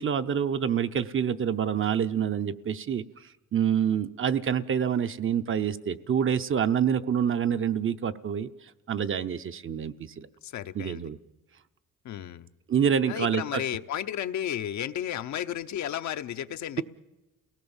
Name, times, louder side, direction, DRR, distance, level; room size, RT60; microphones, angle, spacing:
voice 1, 0.0-8.5 8.9-10.3 10.7-11.2 12.7-13.6, right 8 dB, 45° right, 10 dB, 0.8 m, -27 dB
voice 2, 10.4-11.1 12.0-12.5 13.1-16.8, left 10 dB, 70° left, 9 dB, 0.9 m, -33 dB
28.5 x 18.0 x 7.2 m, 1.1 s
cardioid pair, 90°, 30 cm